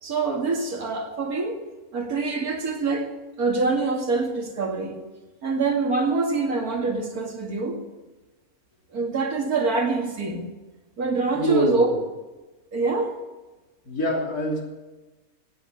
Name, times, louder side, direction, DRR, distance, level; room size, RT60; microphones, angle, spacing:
voice 1, 0.0-1.6 1.9-3.1 3.4-5.0 5.4-7.8 8.9-10.5 11.0-12.0 12.7-13.2, right 3 dB, 80° right, 2 dB, 2.7 m, -25 dB
voice 2, 11.2-12.0 13.9-14.6, equal, 90° left, -1 dB, 3.7 m, -25 dB
16.5 x 9.3 x 7.9 m, 1.2 s
omnidirectional pair, 1.6 m